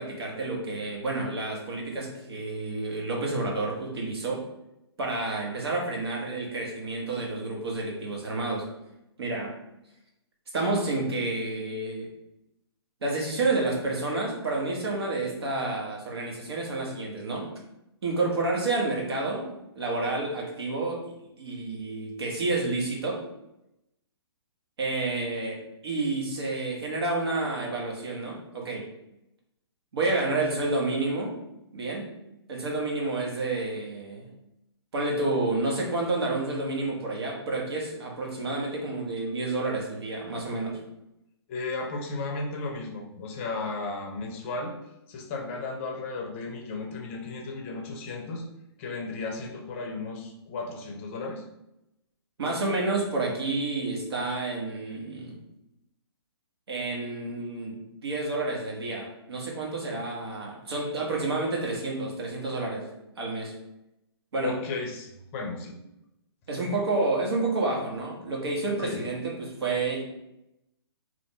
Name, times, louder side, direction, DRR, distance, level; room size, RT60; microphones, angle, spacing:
voice 1, 0.0-4.4 5.0-8.7 9.2-9.5 10.5-12.1 13.0-17.5 18.0-21.0 21.4-23.2 24.8-28.9 29.9-31.3 31.7-32.1 32.5-34.3 34.9-40.8 52.4-55.4 56.7-62.9 63.2-63.6 64.3-64.6 66.5-70.0, right 2 dB, 70° right, -1 dB, 1.4 m, -29 dB
voice 2, 41.5-44.7 45.1-48.5 48.8-51.4 64.4-65.7 68.8-69.0, left 3 dB, 30° left, 2 dB, 0.6 m, -34 dB
3.4 x 2.5 x 4.2 m, 0.87 s
hypercardioid pair, 150°, 14 cm